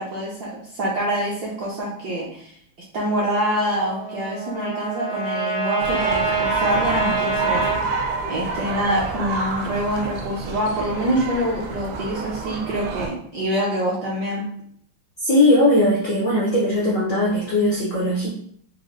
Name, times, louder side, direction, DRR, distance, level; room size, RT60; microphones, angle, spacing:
voice 1, 0.0-2.5 2.9-8.0 8.3-14.4, equal, 70° right, -4 dB, 0.9 m, -25 dB
Trumpet, 3.5-7.8, right 4 dB, 45° left, 0.4 m, -26 dB
sound 1, 5.8-13.1, right 4 dB, 85° right, 1.5 m, -28 dB
voice 2, 15.2-18.3, left 1 dB, 75° left, -5 dB, 0.7 m, -19 dB
4.8 x 2.0 x 2.5 m, 0.64 s
omnidirectional pair, 2.3 m